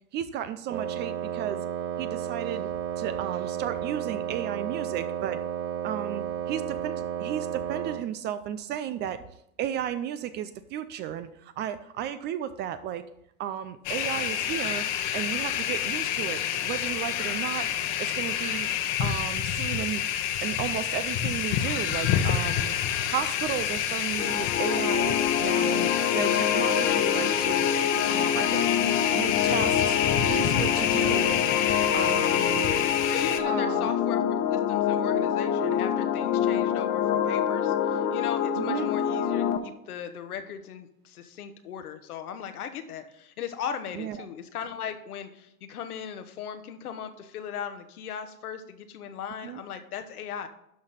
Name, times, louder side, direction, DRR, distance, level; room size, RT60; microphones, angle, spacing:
voice 1, 0.1-1.6 2.0-2.7 3.0-5.4 5.8-9.2 9.6-13.0 13.4-14.9 15.1-17.7 18.0-18.7 19.0-20.0 20.4-22.8 23.1-27.7 28.1-28.7 29.1-30.0 30.3-31.5 31.9-32.8 33.5-33.9 38.6-38.9 43.9-44.3 49.4-49.6, right 10 dB, 25° right, 12 dB, 0.4 m, -34 dB
Wind instrument woodwind instrument, 0.7-8.1, right 9 dB, 70° right, 1.0 m, -32 dB
sound 1, 13.8-33.4, left 10 dB, 45° left, 1.1 m, -28 dB
sound 2, 24.2-39.6, left 8 dB, 60° left, 1.4 m, -26 dB
voice 2, 32.4-34.2 34.5-50.5, left 8 dB, 80° left, 8 dB, 1.3 m, -38 dB
12.0 x 4.0 x 6.6 m, 0.79 s
hypercardioid pair, 110°, 44 cm